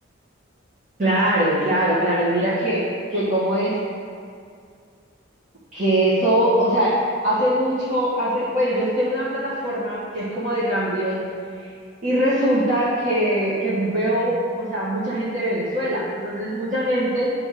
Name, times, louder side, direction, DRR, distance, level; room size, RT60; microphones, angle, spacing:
voice 1, 1.0-2.8 3.1-3.8 5.7-11.2 12.0-17.3, right 1 dB, 40° right, -9 dB, 1.3 m, -22 dB
10.5 x 3.5 x 4.8 m, 2.3 s
head